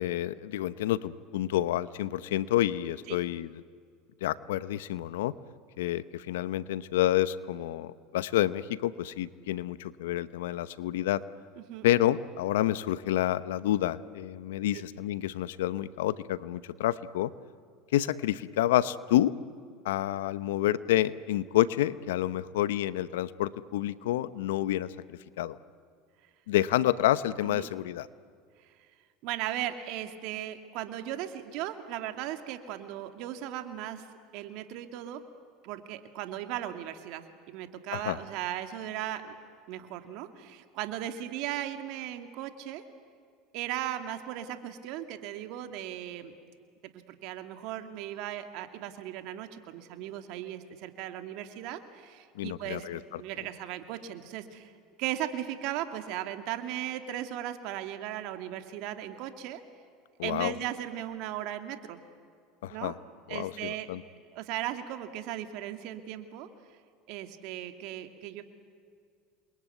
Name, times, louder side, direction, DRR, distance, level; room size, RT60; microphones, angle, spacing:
voice 1, 0.0-3.5 4.2-5.3 5.8-11.2 11.8-17.3 17.9-19.3 19.8-25.6 26.5-28.1 37.9-38.2 52.4-53.2 60.2-60.6 62.6-62.9 63.3-64.0, left 13 dB, 85° left, 16 dB, 0.9 m, -29 dB
voice 2, 29.2-34.1 34.3-35.2 35.6-39.4 39.7-42.8 43.5-46.3 46.9-52.9 53.2-59.6 60.2-62.0 62.7-62.9 63.3-63.9 64.3-66.5 67.1-68.4, right 12 dB, 65° right, 8 dB, 2.4 m, -37 dB
28.0 x 22.5 x 9.3 m, 2.2 s
supercardioid pair, 95°, 0 cm